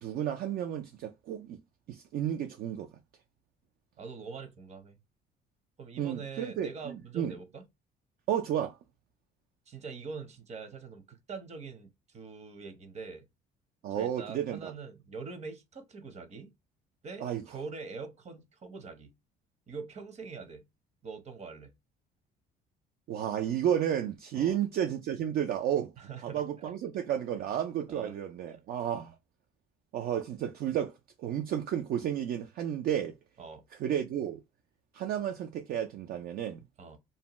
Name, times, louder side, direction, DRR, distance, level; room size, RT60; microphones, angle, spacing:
voice 1, 0.0-1.6 1.9-2.9 6.0-7.3 8.3-8.8 13.8-14.7 17.2-17.4 23.1-25.9 26.2-29.2 29.9-33.2 33.8-34.4 34.9-36.6, right 10 dB, 60° right, 0.4 m, -32 dB
voice 2, 4.0-5.0 5.8-7.6 9.7-13.3 13.9-16.5 17.0-19.1 19.7-20.6 21.0-21.7 24.3-24.6 26.0-26.7 27.4-27.5 27.9-28.1 28.5-28.9 33.4-33.6 36.8-37.0, right 4 dB, 40° right, 0.8 m, -44 dB
2.6 x 2.1 x 3.0 m
cardioid pair, 110°, 17 cm